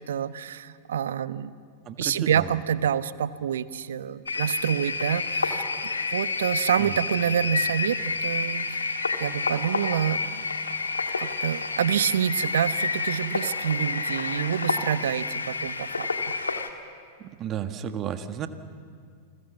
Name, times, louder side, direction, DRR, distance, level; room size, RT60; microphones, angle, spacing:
voice 1, 0.0-1.5 2.0-8.9 9.2-10.5 11.2-16.3, right 9 dB, 65° right, 16 dB, 0.8 m, -27 dB
voice 2, 1.9-2.4 6.8-6.9 17.4-18.5, right 9 dB, 35° right, 9 dB, 1.6 m, -32 dB
sound 1, 4.3-16.7, left 4 dB, 80° left, 1.7 m, -29 dB
29.5 x 21.5 x 7.3 m, 2.2 s
figure-of-eight pair, 95°, 0 cm